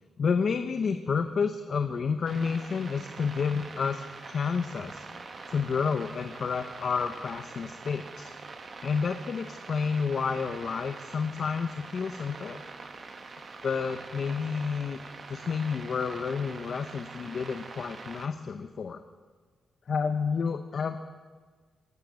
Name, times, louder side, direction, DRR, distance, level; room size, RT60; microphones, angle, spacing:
voice 1, 0.2-5.1 5.5-8.3 8.8-12.6 13.6-15.0 15.3-19.0 19.9-21.0, left 5 dB, 45° left, 8 dB, 0.7 m, -30 dB
sound 1, 2.3-18.3, right 3 dB, 35° right, 1.2 m, -44 dB
17.5 x 12.0 x 6.3 m, 1.5 s
wide cardioid pair, 145°, 0 cm